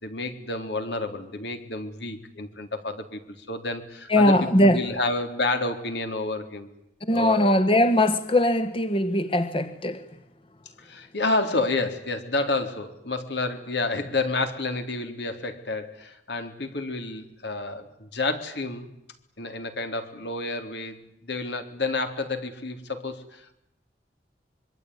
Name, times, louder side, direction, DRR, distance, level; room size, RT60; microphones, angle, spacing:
voice 1, 0.0-4.3 4.6-6.7 7.1-7.6 10.8-18.9 19.4-23.6, left 2 dB, 75° left, 3.8 m, -30 dB
voice 2, 4.1-4.8 7.0-10.0, left 1 dB, 30° left, 1.3 m, -20 dB
25.5 x 23.5 x 9.7 m
head